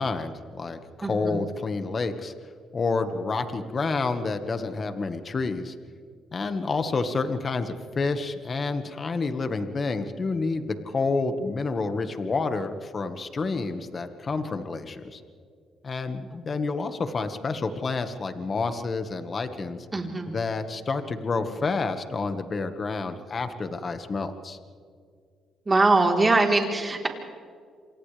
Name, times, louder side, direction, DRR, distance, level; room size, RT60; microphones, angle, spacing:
voice 1, 0.0-2.3 2.7-5.7 6.3-15.2 15.8-19.9 20.3-24.6, left 3 dB, 40° left, 8 dB, 1.6 m, -29 dB
voice 2, 1.0-1.4 19.9-20.3 25.7-27.1, right 3 dB, 25° right, 1 dB, 3.9 m, -22 dB
28.0 x 27.5 x 3.4 m, 2.2 s
cardioid pair, 90°, 0 cm